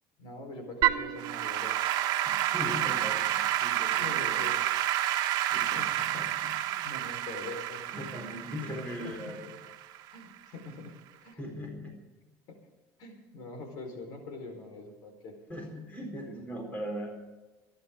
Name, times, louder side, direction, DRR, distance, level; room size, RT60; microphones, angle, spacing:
voice 1, 0.2-1.9 3.9-4.6 5.7-6.2 6.8-7.8 9.0-9.5 10.1-11.4 12.5-12.6 13.0-15.3, left 3 dB, 65° left, 5 dB, 4.4 m, -43 dB
Applause / Keyboard (musical), 0.8-10.1, right 13 dB, 60° right, 1.3 m, -30 dB
voice 2, 2.3-4.5 5.5-6.9 7.9-9.5 11.4-12.0 15.5-17.1, equal, 20° left, 1 dB, 4.2 m, -40 dB
26.0 x 11.0 x 3.7 m, 1.2 s
cardioid pair, 150°, 8 cm